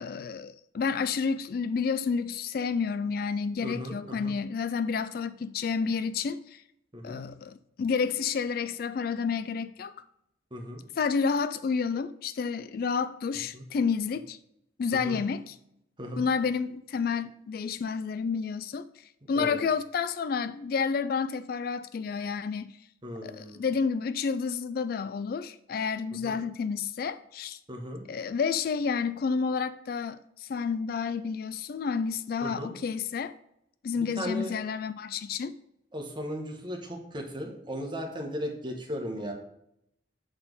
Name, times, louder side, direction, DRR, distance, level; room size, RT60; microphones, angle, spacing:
voice 1, 0.0-6.6 7.0-10.0 11.0-14.4 14.8-15.6 16.2-22.8 23.2-27.6 28.1-33.3 33.8-35.5, left 5 dB, 55° left, 0.3 m, -30 dB
voice 2, 3.6-4.3 6.9-7.2 10.5-10.8 13.5-13.6 15.0-15.2 16.0-16.2 19.3-19.6 23.0-23.6 26.2-26.4 27.7-28.0 32.4-32.7 34.0-34.5 35.9-39.3, equal, 25° right, 1.2 m, -36 dB
8.0 x 4.2 x 5.3 m
head